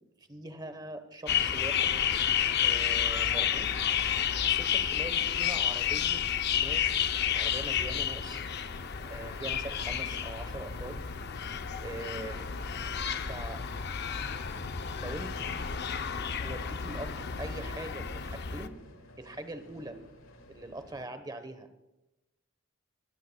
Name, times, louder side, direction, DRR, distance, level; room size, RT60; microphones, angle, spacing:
voice 1, 0.3-2.0 2.6-3.7 4.4-6.2 6.5-8.4 9.0-11.0 11.8-12.4 13.1-13.6 14.9-15.7 16.4-18.7 19.2-20.0 20.5-21.7, right 2 dB, 20° right, 10 dB, 1.0 m, -42 dB
sound 1, 1.3-18.7, left 8 dB, 50° left, 0.6 m, -31 dB
sound 2, 6.6-21.0, left 1 dB, 80° left, 2.0 m, -53 dB
22.0 x 15.5 x 2.3 m, 0.96 s
head